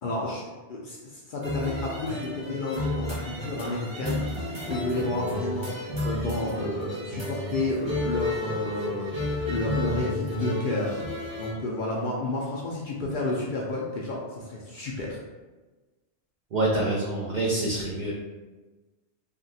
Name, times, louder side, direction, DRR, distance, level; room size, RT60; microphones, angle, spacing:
voice 1, 0.0-15.2, left 2 dB, 60° left, -3 dB, 0.6 m, -31 dB
sound 1, 1.4-11.5, left 1 dB, 25° right, 0.8 m, -32 dB
voice 2, 16.5-18.1, right 2 dB, 60° right, -3 dB, 0.5 m, -26 dB
3.4 x 2.2 x 2.6 m, 1.2 s
omnidirectional pair, 1.2 m